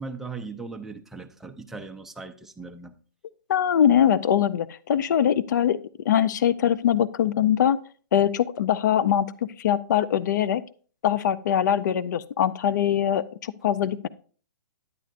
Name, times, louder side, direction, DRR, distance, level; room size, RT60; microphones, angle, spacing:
voice 1, 0.0-2.9, right 4 dB, 5° right, 0.5 m, -38 dB
voice 2, 3.5-5.8 6.0-7.8 8.1-10.6 11.0-14.1, left 9 dB, 65° left, 0.5 m, -22 dB
9.9 x 9.1 x 2.5 m
hypercardioid pair, 155°, 11 cm